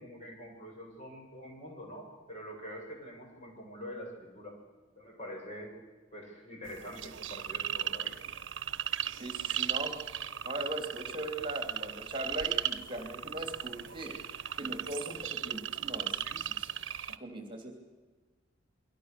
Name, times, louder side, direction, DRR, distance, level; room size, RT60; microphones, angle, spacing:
voice 1, 0.0-4.6 5.0-5.7 6.1-8.1, equal, 40° left, 0 dB, 7.7 m, -45 dB
sound 1, 6.7-17.2, right 10 dB, 75° right, 0.9 m, -36 dB
voice 2, 9.1-9.9 10.4-14.1 14.5-16.7 17.2-17.7, right 1 dB, 25° right, 3 dB, 3.1 m, -40 dB
28.5 x 22.5 x 6.8 m, 1.3 s
head